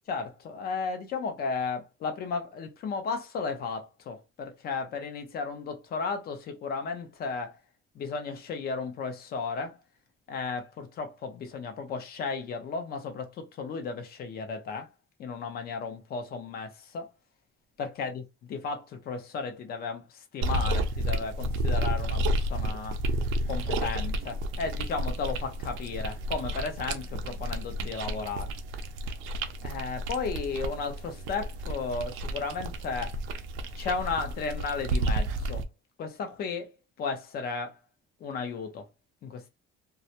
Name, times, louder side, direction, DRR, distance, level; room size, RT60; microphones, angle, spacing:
voice 1, 0.1-7.6 7.9-9.8 10.3-14.9 15.2-17.1 17.8-23.0 23.5-28.5 29.6-33.2 33.8-35.6 36.0-37.8 38.2-38.8 39.2-39.5, left 4 dB, 50° left, 0.7 m, -34 dB
sound 1, 20.4-35.7, right 1 dB, 85° right, 0.5 m, -31 dB
2.3 x 2.1 x 2.8 m
cardioid pair, 145°, 20 cm